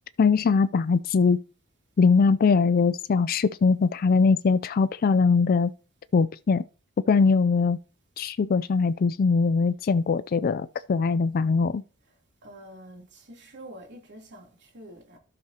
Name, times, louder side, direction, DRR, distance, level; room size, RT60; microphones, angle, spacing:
voice 1, 0.2-1.4 2.0-5.7 6.1-6.6 7.1-7.8 8.2-11.8, left 4 dB, 40° left, 0.4 m, -21 dB
voice 2, 12.4-15.2, right 1 dB, 50° right, 3.1 m, -46 dB
12.5 x 6.5 x 2.8 m
head